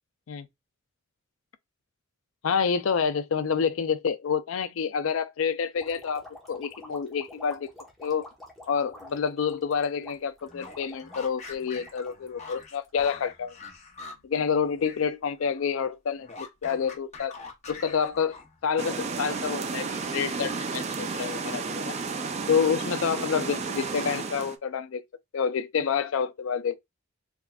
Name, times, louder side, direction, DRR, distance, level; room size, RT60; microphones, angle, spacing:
voice 1, 2.4-7.7 8.0-8.3 8.7-13.5 14.2-17.4 17.7-18.4 18.6-22.0 22.5-25.0 25.3-26.8, left 6 dB, 70° left, 0.4 m, -28 dB
sound 1, 5.8-13.1, left 1 dB, ahead, 1.1 m, -48 dB
sound 2, 10.4-15.1 15.4-18.7, left 4 dB, 35° left, 0.9 m, -45 dB
sound 3, 18.8-24.6, right 4 dB, 30° right, 0.4 m, -32 dB
3.5 x 3.4 x 2.3 m
head